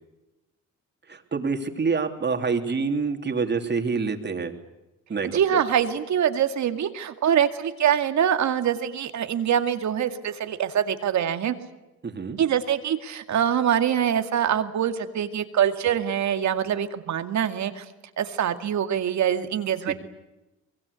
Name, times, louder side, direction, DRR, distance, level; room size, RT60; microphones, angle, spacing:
voice 1, 1.1-4.5 5.1-5.6 12.0-12.4 19.8-19.9, right 4 dB, 35° right, 5 dB, 3.2 m, -27 dB
voice 2, 5.2-11.5 12.4-17.9 18.2-19.9, right 9 dB, 65° right, 8 dB, 2.2 m, -24 dB
25.0 x 21.5 x 8.3 m, 1.0 s
cardioid pair, 90°, 30 cm